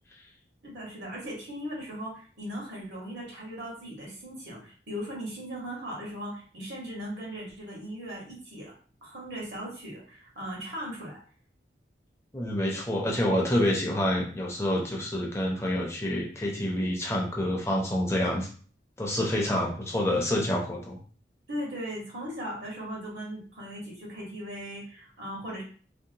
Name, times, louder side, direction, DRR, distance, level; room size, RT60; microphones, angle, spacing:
voice 1, 0.6-8.7 9.0-11.2 21.5-25.6, equal, 70° right, -3 dB, 1.2 m, -38 dB
voice 2, 12.3-18.5 19.0-21.0, left 1 dB, 15° left, -1 dB, 0.5 m, -27 dB
2.8 x 2.1 x 2.6 m, 0.42 s
head